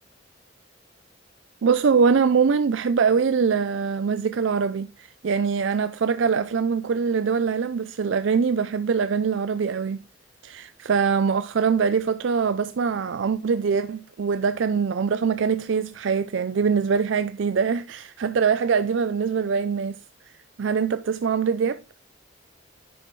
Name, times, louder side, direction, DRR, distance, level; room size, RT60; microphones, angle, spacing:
voice 1, 1.6-10.0 10.4-20.0 20.6-21.8, right 6 dB, 65° right, 0.4 m, -23 dB
10.0 x 6.6 x 3.1 m
head